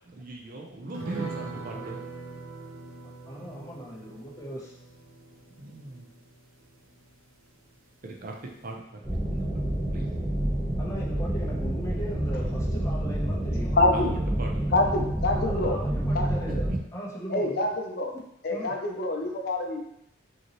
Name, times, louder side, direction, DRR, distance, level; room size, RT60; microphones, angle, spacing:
voice 1, 0.1-2.0 3.4-3.5 5.6-6.1 8.0-8.3 8.6-8.8 9.3-9.4 9.9-10.1 13.9-14.6 16.7-16.8, right 2 dB, 45° right, 0 dB, 0.6 m, -39 dB
voice 2, 0.7-2.0 3.0-4.7 10.8-13.8 15.4-17.7 18.1-18.2 18.5-18.8, equal, 15° left, -4 dB, 0.8 m, -39 dB
sound 1, 0.9-7.7 8.0-8.1 8.5-8.6, right 4 dB, 80° right, 0.7 m, -41 dB
sound 2, 9.0-16.8, right 1 dB, 15° right, 1.0 m, -28 dB
voice 3, 13.8-14.1 14.7-15.8 16.1-16.3 17.3-18.2 18.4-19.8, left 2 dB, 50° left, 2 dB, 0.5 m, -26 dB
5.2 x 2.9 x 3.0 m, 0.78 s
head